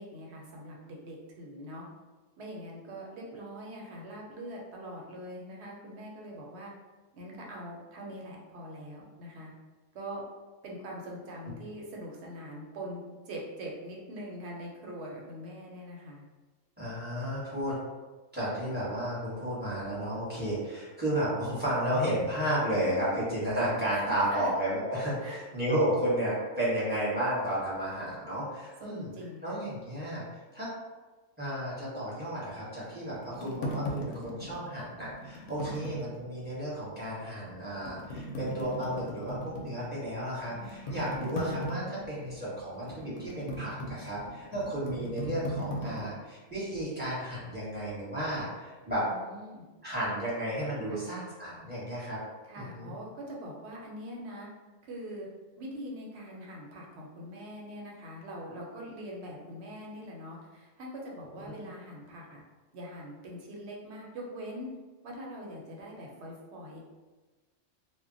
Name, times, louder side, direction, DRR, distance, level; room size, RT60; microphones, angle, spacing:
voice 1, 0.0-1.9 2.4-6.7 7.1-9.5 9.9-10.2 10.6-16.2 22.9-23.0 23.9-24.1 24.3-24.5 25.2-25.4 28.8-29.6 35.6-35.9 40.8-41.1 49.0-49.6 50.9-51.0 52.4-54.5 54.9-55.3 55.6-62.4 62.7-64.8 65.0-66.8, equal, 65° right, -2 dB, 0.9 m, -43 dB
voice 2, 16.8-17.7 18.3-29.1 29.4-30.2 30.5-30.7 31.4-49.0 49.8-52.2 52.6-52.9 61.6-61.7, right 1 dB, 10° right, -10 dB, 0.9 m, -32 dB
sound 1, 32.6-36.6 37.0-37.1 37.6-46.1, equal, 65° left, 0.7 m, -38 dB
2.1 x 2.1 x 3.8 m, 1.2 s
omnidirectional pair, 1.3 m